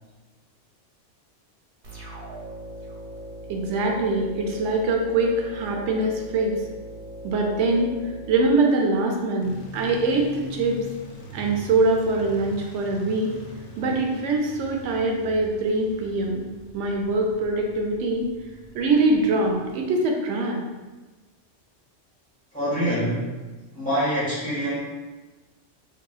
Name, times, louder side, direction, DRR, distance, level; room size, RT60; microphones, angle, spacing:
sound 1, 1.8-9.3, right 1 dB, 50° right, 1.0 m, -40 dB
voice 1, 3.5-6.6 7.2-8.0 8.3-10.8 11.3-13.3 13.8-18.3 18.7-20.6, right 2 dB, 75° right, 1 dB, 0.9 m, -23 dB
sound 2, 9.4-19.8, left 3 dB, 60° left, 0.6 m, -43 dB
voice 2, 22.5-23.3 23.7-24.8, equal, 5° left, -10 dB, 1.4 m, -25 dB
3.6 x 2.7 x 2.3 m, 1.2 s
omnidirectional pair, 1.3 m